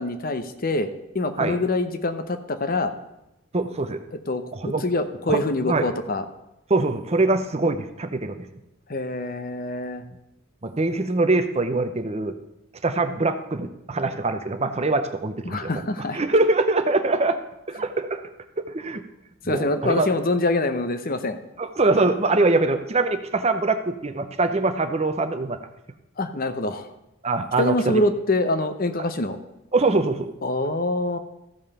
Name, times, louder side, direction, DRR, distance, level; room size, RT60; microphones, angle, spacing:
voice 1, 0.0-2.9 4.3-6.2 8.9-10.0 15.4-16.2 19.4-21.4 26.2-26.9 27.6-29.4 30.4-31.2, left 2 dB, 40° left, 9 dB, 0.8 m, -25 dB
voice 2, 3.5-4.0 4.5-4.8 5.3-5.9 6.7-8.5 10.6-12.4 12.8-15.8 16.1-17.4 17.7-18.2 18.6-19.0 19.4-20.1 21.6-25.6 27.2-28.0 29.7-30.3, right 2 dB, 30° right, 8 dB, 0.6 m, -23 dB
14.0 x 5.5 x 6.7 m, 0.88 s
head